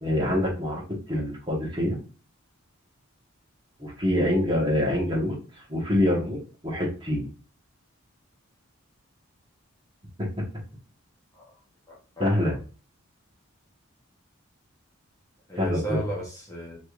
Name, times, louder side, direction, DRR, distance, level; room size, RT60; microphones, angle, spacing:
voice 1, 0.0-2.0 3.8-5.3 5.7-7.2 10.2-10.3 12.2-12.5 15.5-16.0, left 1 dB, 20° right, -4 dB, 1.1 m, -25 dB
voice 2, 11.9-12.5 15.5-16.8, right 1 dB, 15° left, -4 dB, 0.8 m, -35 dB
3.4 x 3.1 x 2.4 m, 0.37 s
head